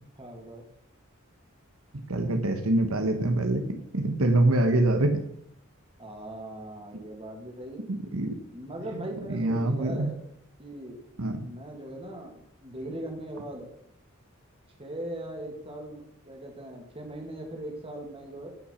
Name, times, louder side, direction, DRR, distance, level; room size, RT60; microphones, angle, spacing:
voice 1, 0.2-0.7 6.0-7.9 8.5-10.2 10.6-11.0 11.4-13.7 14.8-18.5, right 1 dB, 25° right, 1 dB, 2.4 m, -39 dB
voice 2, 2.1-3.7 3.9-5.2 7.9-8.3 8.9-9.0 9.3-10.1 11.2-11.5, right 2 dB, 85° right, 6 dB, 1.3 m, -25 dB
15.0 x 6.0 x 5.7 m, 0.69 s
head